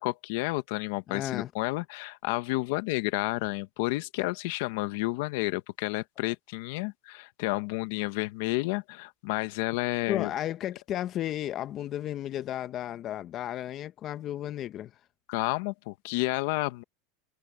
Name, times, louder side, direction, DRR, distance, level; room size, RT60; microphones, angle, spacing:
voice 1, 0.0-10.3 15.3-16.8, left 21 dB, 65° left, 1.3 m, -31 dB
voice 2, 1.1-1.5 10.1-14.9, left 12 dB, 40° left, 1.1 m, -33 dB
supercardioid pair, 130°, 0 cm